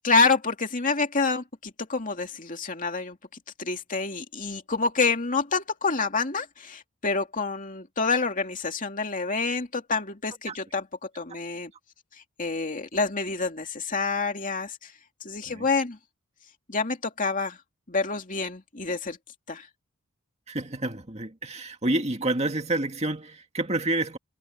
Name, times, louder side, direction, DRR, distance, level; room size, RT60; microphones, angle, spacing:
voice 1, 0.0-3.2 3.6-11.7 12.4-14.9 15.2-16.0 16.7-17.6 17.9-19.2 19.5-19.7, left 4 dB, 35° left, 2.5 m, -27 dB
voice 2, 20.5-24.2, right 2 dB, 30° right, 2.0 m, -28 dB
head